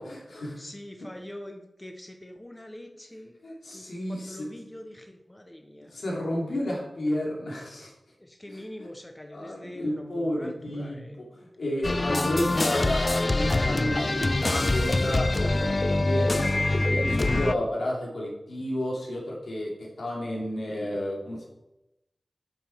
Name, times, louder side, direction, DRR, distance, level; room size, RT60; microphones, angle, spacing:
voice 1, 0.0-0.6 3.4-4.5 5.8-7.9 8.8-8.9 9.3-11.0 11.4-21.4, left 1 dB, 90° left, -3 dB, 2.7 m, -31 dB
voice 2, 0.6-3.4 3.7-6.0 8.2-11.2, left 1 dB, 15° left, 4 dB, 0.8 m, -43 dB
sound 1, 11.8-17.5, left 2 dB, 35° left, 0.4 m, -24 dB
9.1 x 5.6 x 4.5 m, 0.92 s
wide cardioid pair, 100°, 0 cm